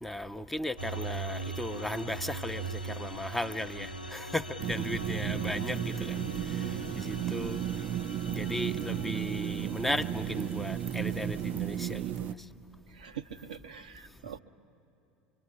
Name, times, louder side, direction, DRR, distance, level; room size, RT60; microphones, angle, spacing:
voice 1, 0.0-6.2 7.0-7.6 8.3-12.1, left 1 dB, 5° left, 0.7 m, -36 dB
sound 1, 0.8-11.6, right 2 dB, 85° left, 0.7 m, -41 dB
sound 2, 4.6-12.3, right 10 dB, 40° right, 0.6 m, -34 dB
voice 2, 13.0-14.4, right 8 dB, 70° right, 0.8 m, -43 dB
24.5 x 24.5 x 9.8 m
figure-of-eight pair, 75°, 5 cm